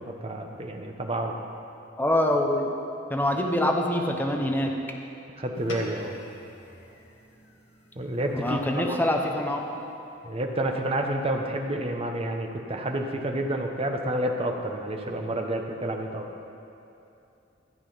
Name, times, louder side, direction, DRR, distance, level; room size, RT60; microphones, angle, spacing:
voice 1, 0.0-1.4 5.4-6.2 8.0-8.6 8.9-9.0 10.2-16.3, right 1 dB, 30° right, 3 dB, 1.1 m, -29 dB
voice 2, 2.0-2.7 3.1-4.7 8.3-9.6, left 1 dB, 10° left, 1 dB, 1.0 m, -25 dB
sound 1, 5.5-10.2, left 1 dB, 80° left, 1.7 m, -45 dB
13.5 x 8.7 x 5.7 m, 2.7 s
head